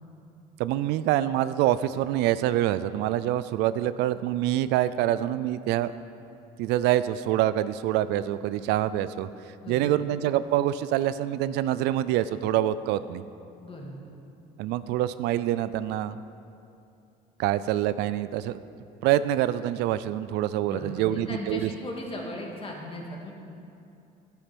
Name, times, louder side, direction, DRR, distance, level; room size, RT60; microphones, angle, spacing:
voice 1, 0.6-5.9 6.6-9.3 9.7-13.2 14.6-16.2 17.4-18.6 19.0-21.7, right 13 dB, 90° right, 14 dB, 0.4 m, -26 dB
voice 2, 13.6-14.1 20.7-23.3, left 1 dB, 35° left, 0 dB, 2.3 m, -37 dB
12.0 x 9.5 x 5.2 m, 2.7 s
cardioid pair, 110°, 17 cm